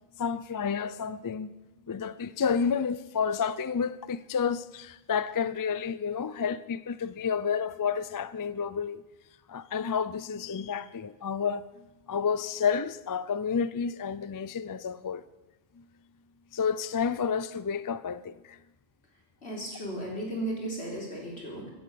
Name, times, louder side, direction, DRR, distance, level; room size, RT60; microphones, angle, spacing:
voice 1, 0.2-1.5 1.9-9.0 9.5-15.2 15.8-15.9 16.5-18.6, left 6 dB, 35° left, 0.3 m, -30 dB
voice 2, 19.4-21.7, right 1 dB, 90° left, 4.3 m, -35 dB
17.0 x 10.0 x 6.9 m
omnidirectional pair, 1.1 m